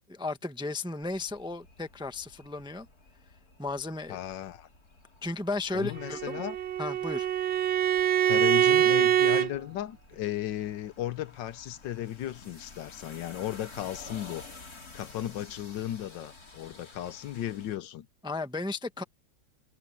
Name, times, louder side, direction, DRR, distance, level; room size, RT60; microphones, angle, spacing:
voice 1, 0.1-2.9 3.6-4.2 5.2-6.4 6.8-7.3 18.2-19.0, left 2 dB, 5° right, 0.7 m, -34 dB
sound 1, 1.0-17.8, left 3 dB, 50° left, 4.0 m, -52 dB
voice 2, 4.1-4.7 5.7-6.6 8.2-14.4 14.9-18.1, left 12 dB, 75° left, 1.5 m, -35 dB
Bowed string instrument, 6.0-9.5, right 11 dB, 65° right, 0.6 m, -24 dB
omnidirectional pair, 2.0 m